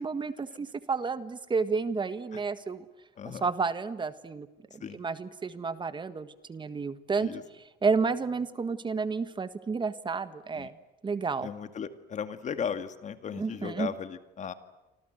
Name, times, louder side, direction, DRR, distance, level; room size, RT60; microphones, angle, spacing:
voice 1, 0.0-2.8 3.4-4.5 4.7-7.3 7.8-10.7 11.0-11.5 13.4-13.9, right 4 dB, 30° right, 12 dB, 1.6 m, -31 dB
voice 2, 3.2-3.5 4.8-5.0 7.2-7.4 10.5-10.7 11.4-14.5, left 7 dB, 45° left, 10 dB, 2.2 m, -36 dB
29.0 x 25.5 x 8.0 m, 1.0 s
cardioid pair, 110°, 17 cm